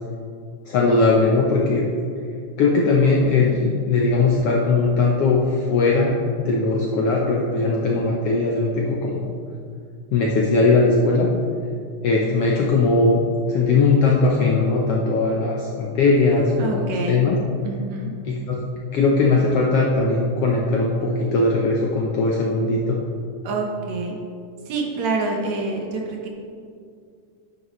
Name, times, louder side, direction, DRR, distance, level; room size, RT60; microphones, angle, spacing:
voice 1, 0.7-1.8 2.6-6.2 6.4-9.2 10.1-11.3 12.0-13.2 13.5-17.4 18.2-18.6 18.9-23.0, left 3 dB, 70° left, -2 dB, 1.4 m, -19 dB
voice 2, 16.6-17.2 17.6-18.1 23.4-24.2 24.7-26.3, right 3 dB, 70° right, 0 dB, 2.2 m, -27 dB
10.5 x 9.3 x 3.1 m, 2.3 s
omnidirectional pair, 3.5 m